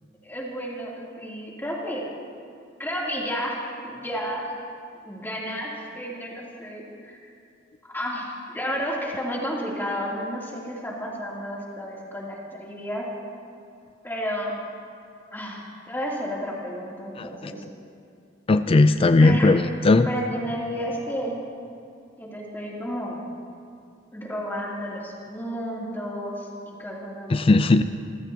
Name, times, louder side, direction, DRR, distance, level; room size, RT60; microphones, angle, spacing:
voice 1, 0.2-2.0 2.8-4.5 5.0-7.3 7.8-13.0 14.0-14.5 15.3-17.6 18.8-19.6 20.0-21.4 22.2-23.2 24.1-27.5, equal, 10° left, -5 dB, 3.0 m, -32 dB
voice 2, 18.5-20.1 27.3-27.8, left 2 dB, 30° left, 10 dB, 0.4 m, -17 dB
28.0 x 15.0 x 2.9 m, 2.5 s
head